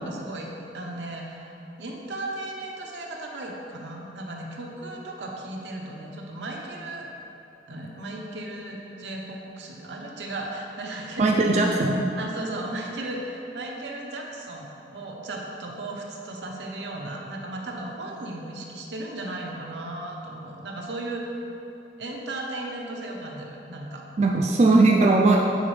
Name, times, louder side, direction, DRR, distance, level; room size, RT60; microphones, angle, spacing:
voice 1, 0.0-7.1 7.7-11.4 11.7-11.8 12.2-21.3 22.0-24.0, right 2 dB, 80° right, -1 dB, 0.8 m, -36 dB
voice 2, 11.2-12.0 24.2-25.4, right 3 dB, 35° right, -1 dB, 0.3 m, -19 dB
9.3 x 4.1 x 3.2 m, 2.9 s
head